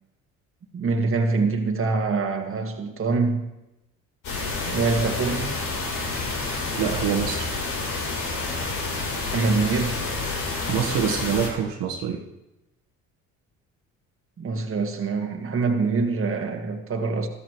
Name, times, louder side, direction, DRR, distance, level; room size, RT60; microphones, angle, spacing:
voice 1, 0.7-3.5 4.7-5.6 9.3-10.0 14.4-17.3, right 4 dB, 35° right, 1.8 m, -24 dB
sound 1, 4.2-11.5, left 3 dB, 65° left, 3.8 m, -29 dB
voice 2, 6.8-7.5 10.7-12.2, right 7 dB, 70° right, 1.5 m, -25 dB
13.5 x 13.0 x 3.2 m
supercardioid pair, 70°, 36 cm